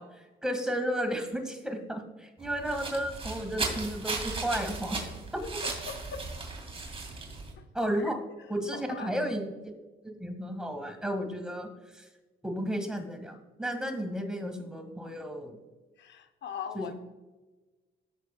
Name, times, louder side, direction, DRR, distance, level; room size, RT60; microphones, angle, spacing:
voice 1, 0.0-5.0 5.3-5.4 7.7-8.2 8.5-9.5 10.0-12.1 12.4-15.6 16.7-16.9, equal, 5° right, 4 dB, 1.6 m, -33 dB
sound 1, 2.4-7.5, right 3 dB, 30° right, 2.4 m, -36 dB
voice 2, 5.6-6.2 8.7-9.1 16.0-16.9, left 6 dB, 65° left, 8 dB, 0.7 m, -40 dB
13.5 x 6.5 x 2.2 m, 1.2 s
cardioid pair, 90°, 20 cm